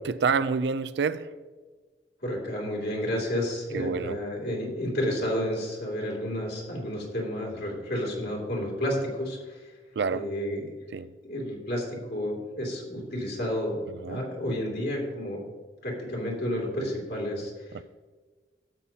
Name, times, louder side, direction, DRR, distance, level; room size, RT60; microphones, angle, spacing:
voice 1, 0.1-1.3 3.7-4.2 10.0-10.3 10.9-11.1 13.9-14.2 17.7-17.8, right 5 dB, 75° right, 0.4 m, -28 dB
voice 2, 2.2-9.7 10.1-10.7 11.2-15.5 15.8-17.8, equal, 60° left, 2.8 m, -31 dB
12.5 x 8.6 x 2.8 m
head